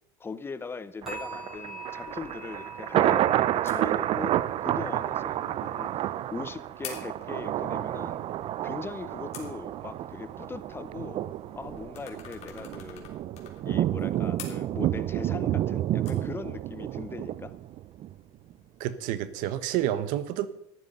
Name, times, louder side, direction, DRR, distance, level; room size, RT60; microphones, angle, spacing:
voice 1, 0.2-8.2 8.6-11.2 11.5-13.1 13.6-17.5, left 4 dB, 15° left, 0.7 m, -40 dB
sound 1, 1.0-8.1 8.4-8.8 9.3-9.4, right 2 dB, 5° right, 7.1 m, -46 dB
Thunder, 1.0-18.1 18.5-18.6, right 12 dB, 40° right, 0.4 m, -30 dB
sound 2, 1.9-19.8, left 8 dB, 45° left, 3.4 m, -51 dB
voice 2, 18.8-20.5, right 12 dB, 60° right, 1.2 m, -29 dB
14.5 x 11.0 x 5.5 m
supercardioid pair, 130°, 15 cm